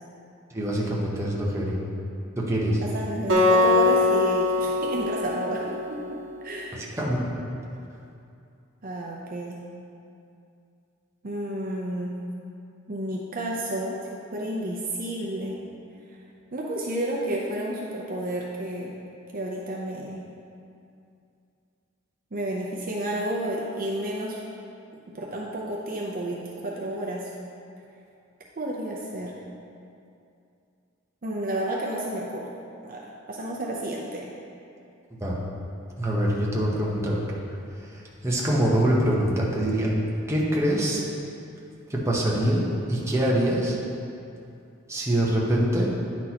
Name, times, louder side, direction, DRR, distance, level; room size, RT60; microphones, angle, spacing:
voice 1, 0.5-1.8 2.4-2.8 6.8-7.2 35.2-35.4 36.0-37.2 37.9-39.9 40.3-41.0 41.9-43.8 44.9-45.9, right 1 dB, 15° right, -4 dB, 1.0 m, -24 dB
voice 2, 2.8-6.9 8.8-9.6 11.2-12.1 12.9-15.6 16.5-19.0 19.3-20.2 22.3-24.4 25.1-27.3 28.6-29.3 31.2-32.5 32.8-34.3, right 1 dB, 45° right, -3 dB, 0.6 m, -31 dB
Acoustic guitar, 3.3-6.5, left 2 dB, 70° right, 1.3 m, -22 dB
9.5 x 6.1 x 2.9 m, 2.6 s
head